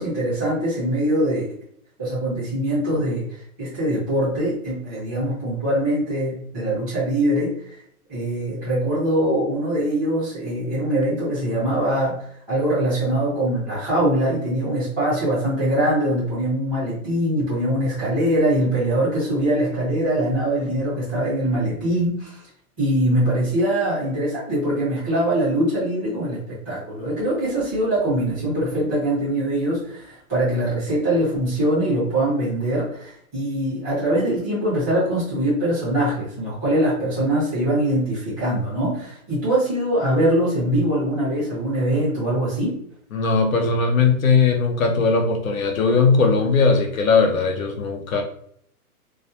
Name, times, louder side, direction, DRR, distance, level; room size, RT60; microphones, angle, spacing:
voice 1, 0.0-1.5 2.0-3.2 3.6-7.8 8.1-12.1 12.5-22.4 22.8-42.8, right 1 dB, ahead, -11 dB, 0.8 m, -22 dB
voice 2, 43.1-48.2, left 4 dB, 65° left, 3 dB, 0.6 m, -19 dB
2.2 x 2.2 x 2.8 m, 0.65 s
hypercardioid pair, 180°, 45 cm